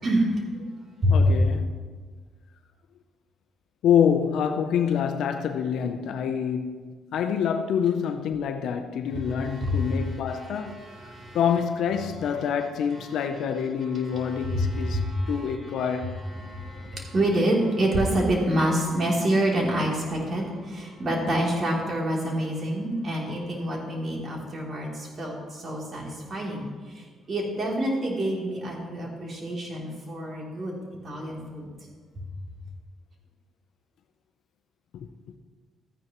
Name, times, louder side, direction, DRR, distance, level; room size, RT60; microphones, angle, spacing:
voice 1, 0.0-0.3 1.0-1.3 9.3-11.4 12.2-12.5 12.9-13.4 13.8-30.8 31.0-31.7, equal, 45° right, 3.1 m, -27 dB
voice 2, 1.1-1.7 3.8-10.8 11.3-15.0 15.3-16.1 34.9-35.1, left 7 dB, 75° left, 0.6 m, -26 dB
13.5 x 9.7 x 3.1 m
cardioid pair, 85°, 0 cm